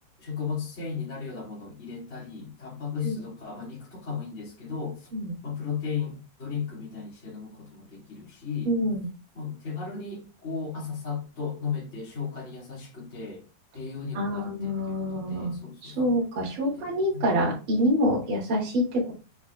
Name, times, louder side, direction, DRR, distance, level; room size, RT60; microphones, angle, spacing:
voice 1, 0.2-5.1 5.4-8.7 9.3-13.4 13.7-16.0 16.6-17.3, left 6 dB, 20° left, 1.9 m, -35 dB
voice 2, 8.6-9.1 14.1-15.5 15.8-19.1, equal, 30° right, 3.3 m, -26 dB
8.4 x 5.0 x 2.5 m
omnidirectional pair, 5.5 m